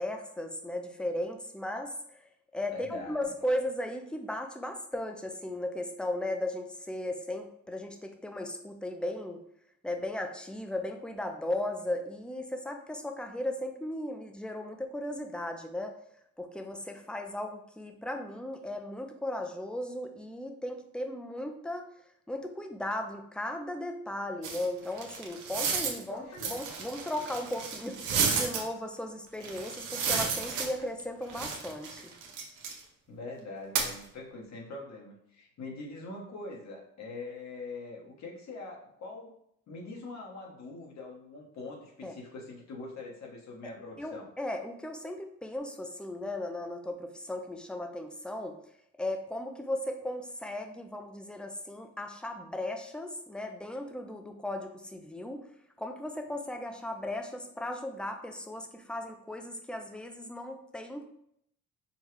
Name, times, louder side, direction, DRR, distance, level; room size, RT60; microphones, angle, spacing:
voice 1, 0.0-2.2 2.5-9.4 9.8-15.9 16.4-21.9 22.3-32.0 42.0-42.1 44.0-48.6 49.0-55.5 55.8-61.2, left 1 dB, 5° left, 5 dB, 0.5 m, -36 dB
voice 2, 2.7-3.2 26.1-26.9 33.1-39.3 39.7-44.3, left 3 dB, 65° left, -1 dB, 1.3 m, -43 dB
sound 1, 24.4-26.0 26.4-28.6 29.4-31.0 31.3-32.8 33.7-33.9, right 5 dB, 85° right, 0.8 m, -32 dB
5.4 x 2.3 x 3.2 m, 0.72 s
cardioid pair, 90°, 30 cm